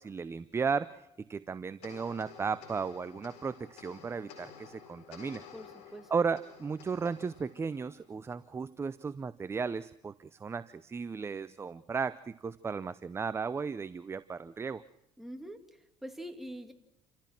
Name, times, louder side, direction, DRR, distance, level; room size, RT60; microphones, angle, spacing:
voice 1, 0.0-5.4 6.1-14.8, right 5 dB, 20° right, 15 dB, 0.6 m, -35 dB
sound 1, 1.8-8.5, left 7 dB, 75° left, 4.6 m, -52 dB
voice 2, 5.5-6.1 15.2-16.7, equal, ahead, 5 dB, 2.5 m, -44 dB
29.0 x 15.0 x 6.0 m, 0.87 s
cardioid pair, 100°, 11 cm